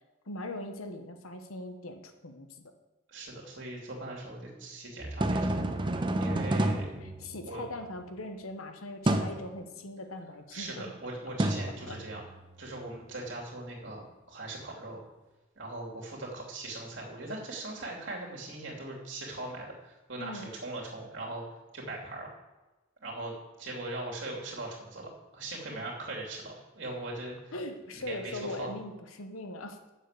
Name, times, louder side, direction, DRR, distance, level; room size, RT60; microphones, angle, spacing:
voice 1, 0.3-2.6 7.0-10.9 11.9-12.2 20.2-20.5 25.7-25.9 27.5-29.8, left 1 dB, 85° left, 7 dB, 1.1 m, -41 dB
voice 2, 3.1-5.5 6.2-6.9 7.3-7.6 10.5-12.2 12.6-15.0 15.6-21.4 21.7-22.3 23.0-27.5 27.9-28.7, right 2 dB, 60° right, -2 dB, 2.8 m, -40 dB
sound 1, 5.0-7.8 9.1-9.5 11.4-12.5, right 1 dB, 25° right, 0.7 m, -30 dB
7.4 x 6.9 x 8.1 m, 1.1 s
head